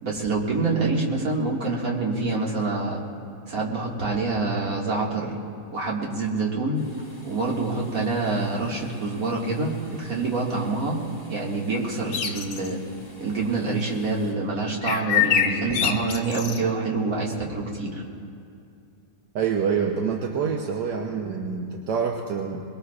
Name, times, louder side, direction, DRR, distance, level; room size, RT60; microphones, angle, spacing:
voice 1, 0.0-3.0 3.5-5.3 5.7-6.8 7.2-11.0 11.3-12.8 13.2-18.0, right 3 dB, 50° right, -3 dB, 2.4 m, -26 dB
sound 1, 6.7-14.3, left 1 dB, 25° left, 3.2 m, -47 dB
sound 2, 12.1-12.7 14.8-16.6, left 9 dB, 75° left, 1.5 m, -24 dB
voice 2, 19.3-22.6, right 6 dB, 80° right, 2 dB, 1.4 m, -26 dB
22.5 x 22.0 x 2.4 m, 2.5 s
omnidirectional pair, 1.9 m